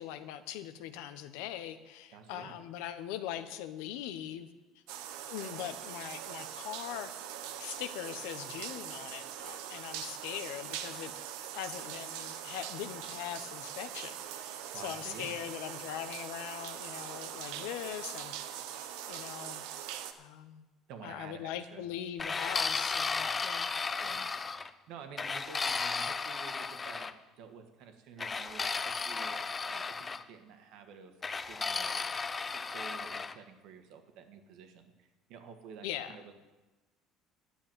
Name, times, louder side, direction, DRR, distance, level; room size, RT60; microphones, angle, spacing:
voice 1, 0.0-4.5 5.3-7.1 7.6-11.1 11.5-18.3 19.1-19.7 20.2-20.7 21.0-23.7 35.8-36.2, left 11 dB, 90° left, 10 dB, 0.9 m, -41 dB
voice 2, 2.1-2.5 14.7-15.3 20.9-21.8 24.0-24.3 24.9-27.1 27.4-31.1 31.5-32.0 32.5-36.3, right 6 dB, 65° right, 6 dB, 1.6 m, -50 dB
sound 1, 4.9-20.1, right 10 dB, 85° right, 0.9 m, -42 dB
sound 2, 22.2-24.7 25.2-27.1 28.2-30.2 31.2-33.4, left 4 dB, 20° left, 0.5 m, -34 dB
10.5 x 7.2 x 9.0 m, 1.1 s
cardioid pair, 150°, 0 cm